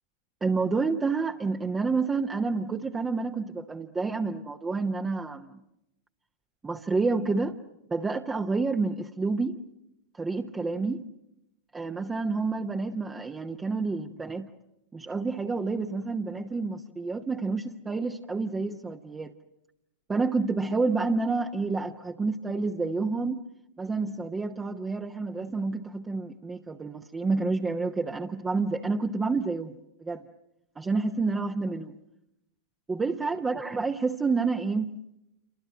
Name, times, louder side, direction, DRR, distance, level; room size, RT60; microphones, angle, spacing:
voice 1, 0.4-5.5 6.6-7.6 7.9-9.6 10.1-11.0 11.7-14.5 14.9-19.3 20.1-23.4 23.8-30.3 30.8-31.9 32.9-35.0, right 4 dB, 15° right, 4 dB, 1.0 m, -29 dB
28.5 x 24.5 x 7.7 m, 0.88 s
figure-of-eight pair, 90°, 0 cm